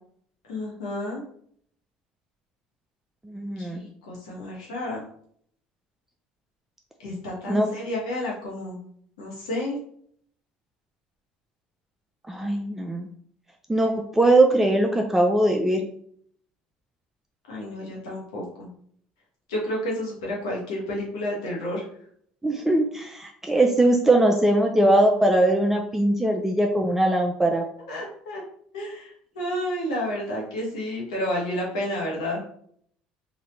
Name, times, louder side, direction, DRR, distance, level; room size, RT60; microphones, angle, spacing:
voice 1, 0.5-1.2 3.6-5.0 7.0-8.8 9.2-9.8 17.5-18.7 19.5-21.9 27.8-28.4 28.7-32.4, left 1 dB, 90° left, -3 dB, 1.5 m, -31 dB
voice 2, 3.2-3.9 7.5-7.7 12.3-13.1 13.7-15.8 22.4-27.6, right 1 dB, 10° right, 2 dB, 0.5 m, -21 dB
3.9 x 2.7 x 3.2 m, 0.63 s
supercardioid pair, 80°, 4 cm